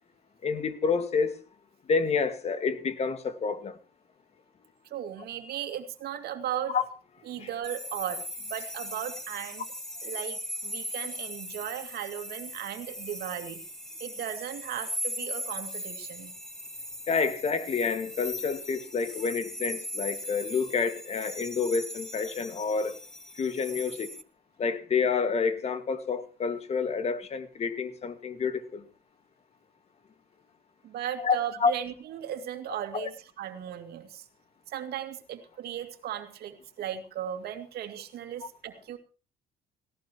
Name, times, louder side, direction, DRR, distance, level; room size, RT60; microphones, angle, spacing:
voice 1, 0.4-1.4 1.9-3.8 6.7-6.8 7.4-7.5 17.1-23.0 23.4-24.1 24.6-28.8 31.2-31.7 32.9-33.1 38.4-38.5, left 5 dB, 40° left, 1.9 m, -28 dB
voice 2, 4.9-6.8 7.3-9.6 10.0-13.6 14.0-16.3 30.8-34.2 34.7-39.0, right 10 dB, 70° right, 2.5 m, -36 dB
sound 1, 7.6-24.2, equal, 5° left, 1.2 m, -39 dB
18.0 x 17.0 x 3.1 m
cardioid pair, 110°, 17 cm